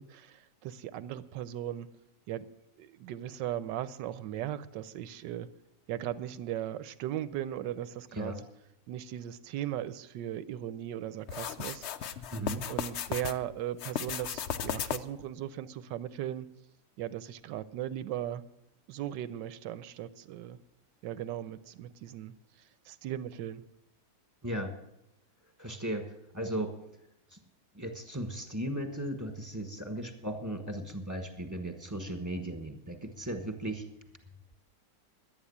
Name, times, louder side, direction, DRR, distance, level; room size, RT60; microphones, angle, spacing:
voice 1, 0.0-1.9 2.3-2.5 2.8-5.5 5.9-8.3 8.9-12.2 12.7-16.5 17.0-18.4 18.9-20.6 21.0-22.3 22.9-23.6, right 11 dB, 80° right, 15 dB, 1.3 m, -37 dB
sound 1, 11.3-13.4 13.8-15.2, left 9 dB, 85° left, 0.6 m, -35 dB
voice 2, 12.3-12.6 24.4-24.7 25.6-26.1 26.3-26.7 27.3-27.4 27.7-33.8, right 1 dB, 10° right, 5 dB, 1.4 m, -36 dB
11.5 x 9.3 x 8.5 m, 0.83 s
omnidirectional pair, 1.9 m